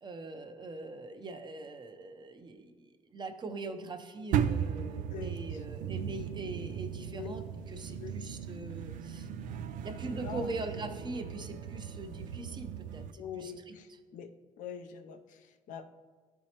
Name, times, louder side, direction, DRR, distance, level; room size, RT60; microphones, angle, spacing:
voice 1, 0.0-9.3 9.8-13.8, right 2 dB, 35° right, 6 dB, 0.7 m, -42 dB
sound 1, 4.3-13.1, right 8 dB, 85° right, 0.4 m, -37 dB
voice 2, 5.1-5.6 7.1-7.3 8.0-8.2 10.2-10.5 13.2-15.8, left 7 dB, 80° left, 7 dB, 0.6 m, -44 dB
12.0 x 4.6 x 2.9 m, 1.5 s
cardioid pair, 100°, 13 cm